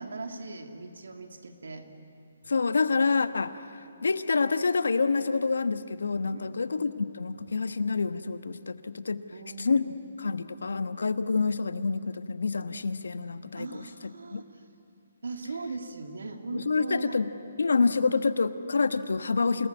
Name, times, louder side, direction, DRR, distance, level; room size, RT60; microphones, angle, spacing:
voice 1, 0.0-1.9 6.2-6.6 9.3-9.9 13.6-14.4 15.2-17.2, right 3 dB, 80° right, 4 dB, 2.7 m, -39 dB
voice 2, 2.5-9.2 9.6-9.8 10.2-13.8 14.3-14.4 16.5-17.3 17.6-19.7, left 4 dB, 80° left, 11 dB, 1.2 m, -27 dB
28.0 x 19.0 x 9.7 m, 2.5 s
hypercardioid pair, 150°, 0 cm